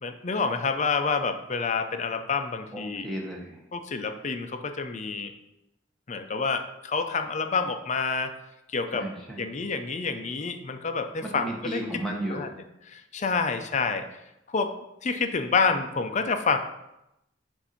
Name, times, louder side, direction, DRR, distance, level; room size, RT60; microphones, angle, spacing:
voice 1, 0.0-3.1 3.7-5.3 6.1-8.3 8.7-9.0 9.4-11.8 12.3-12.5 12.9-14.0 14.5-14.7 15.0-16.6, left 4 dB, 40° left, 7 dB, 0.5 m, -28 dB
voice 2, 2.7-3.6 8.9-9.5 11.2-12.5, right 1 dB, ahead, -2 dB, 1.1 m, -34 dB
6.9 x 2.6 x 5.7 m, 0.88 s
head